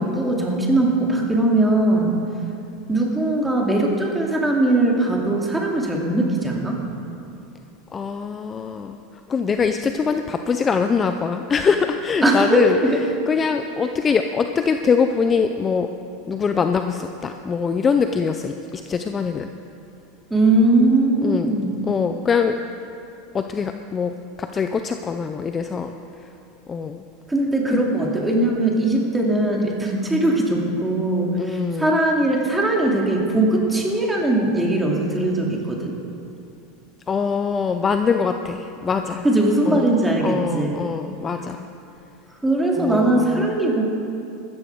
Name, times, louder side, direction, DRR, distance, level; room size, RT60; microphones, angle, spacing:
voice 1, 0.0-2.1 2.9-6.8 12.2-13.0 20.3-21.8 27.3-35.9 39.2-40.8 42.4-43.8, right 2 dB, 5° right, -1 dB, 2.4 m, -20 dB
voice 2, 7.9-9.0 9.3-12.8 13.3-15.9 16.3-19.5 21.2-21.5 21.8-22.6 23.3-26.0 26.7-27.0 27.7-27.8 31.4-32.0 37.1-39.2 39.7-39.9 40.2-41.7 42.8-43.5, left 5 dB, 25° left, 7 dB, 0.5 m, -23 dB
15.0 x 13.5 x 4.6 m, 2.7 s
supercardioid pair, 125°, 0 cm